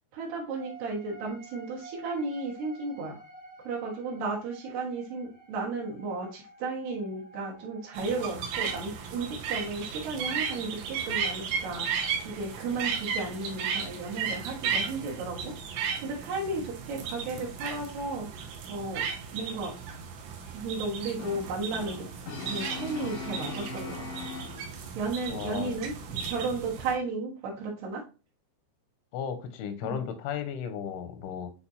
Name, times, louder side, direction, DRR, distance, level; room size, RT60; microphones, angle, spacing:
voice 1, 0.1-3.2 3.6-19.1 19.3-19.7 20.5-22.0 22.4-24.0 24.9-28.0 29.8-30.0, right 3 dB, 65° right, -3 dB, 3.1 m, -34 dB
sound 1, 0.6-8.3, right 3 dB, 45° left, 0.6 m, -50 dB
sound 2, 7.9-26.9, right 6 dB, 85° right, 3.3 m, -35 dB
Brass instrument, 21.2-25.0, left 4 dB, 65° left, 1.4 m, -40 dB
voice 2, 25.3-25.7 29.1-31.5, left 8 dB, 90° left, 7 dB, 3.1 m, -35 dB
9.1 x 4.1 x 2.8 m, 0.33 s
omnidirectional pair, 5.4 m